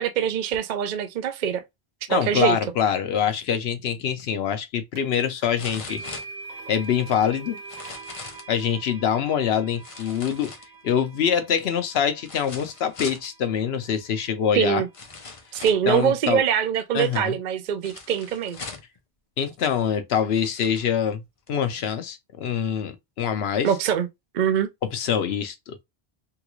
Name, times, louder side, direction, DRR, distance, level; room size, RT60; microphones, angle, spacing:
voice 1, 0.0-1.6 2.1-2.6 14.5-14.9 15.5-18.6 23.6-24.1 24.3-24.7, right 8 dB, 55° right, 0.6 m, -23 dB
voice 2, 2.1-6.0 6.7-7.6 8.5-10.5 10.8-14.8 15.9-16.4 16.9-17.4 19.4-21.2 21.5-23.7 24.9-25.8, left 8 dB, 80° left, 0.9 m, -24 dB
sound 1, 4.2-4.3 5.6-6.9 7.6-8.5 9.8-11.0 12.2-13.3 14.3-14.4 14.9-15.9 17.8-19.0 19.8-19.9 20.3-20.9 21.5-21.6, left 4 dB, 40° left, 0.6 m, -40 dB
sound 2, 5.0-5.1 5.9-13.9, right 4 dB, 85° right, 1.1 m, -43 dB
3.6 x 2.3 x 3.0 m
omnidirectional pair, 1.1 m